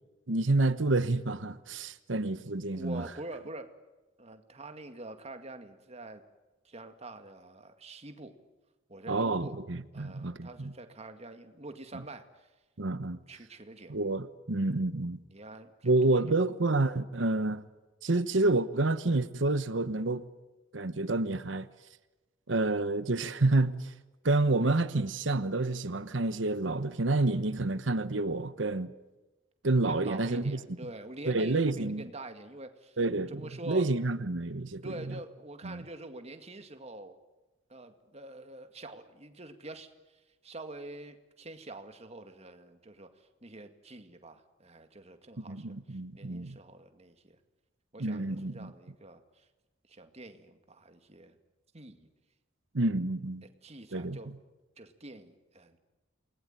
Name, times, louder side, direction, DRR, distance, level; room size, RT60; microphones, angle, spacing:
voice 1, 0.3-3.0 9.1-10.7 12.8-13.2 13.9-15.2 15.8-17.6 18.0-20.2 20.7-21.7 22.5-23.9 24.2-28.9 29.6-30.6 31.3-32.0 33.0-35.1 35.6-35.8 45.4-46.6 48.0-48.7 52.7-53.4 53.9-54.2, right 2 dB, 70° right, 1.1 m, -29 dB
voice 2, 2.7-3.7 4.2-6.2 6.6-8.4 8.9-9.6 9.9-12.5 13.3-14.0 15.3-16.3 29.9-33.0 33.3-33.9 34.7-37.2 37.7-39.9 40.4-47.4 47.9-49.5 49.9-51.3 51.7-52.1 53.4-54.3 54.8-55.8, right 2 dB, 35° right, 2.1 m, -46 dB
28.5 x 20.0 x 9.1 m
head